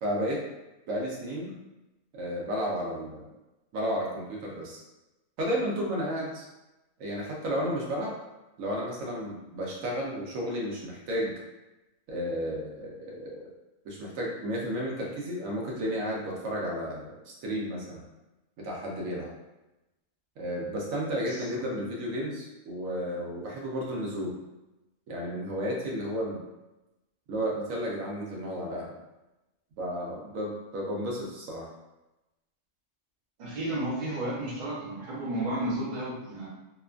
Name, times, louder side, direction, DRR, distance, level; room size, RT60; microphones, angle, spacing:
voice 1, 0.0-0.4 0.9-1.6 2.1-3.3 3.7-4.8 5.4-6.4 7.0-8.1 8.6-11.3 12.1-13.5 13.8-18.0 18.6-19.3 20.4-24.3 25.1-26.4 27.3-29.0 29.8-31.7, equal, 85° right, -2 dB, 1.1 m, -32 dB
voice 2, 33.4-36.5, right 1 dB, 45° right, -5 dB, 0.7 m, -32 dB
2.8 x 2.2 x 2.4 m, 1.0 s
omnidirectional pair, 1.4 m